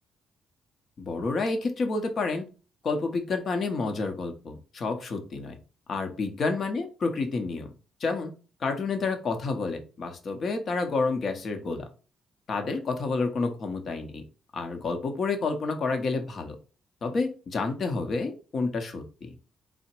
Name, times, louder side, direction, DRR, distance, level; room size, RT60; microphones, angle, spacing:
voice 1, 1.0-2.4 2.8-5.5 5.9-7.7 8.0-8.3 8.6-11.9 12.5-14.2 14.5-16.6 17.0-19.3, left 3 dB, 50° left, 6 dB, 0.8 m, -29 dB
3.8 x 2.1 x 4.4 m, 0.34 s
cardioid pair, 90°, 0 cm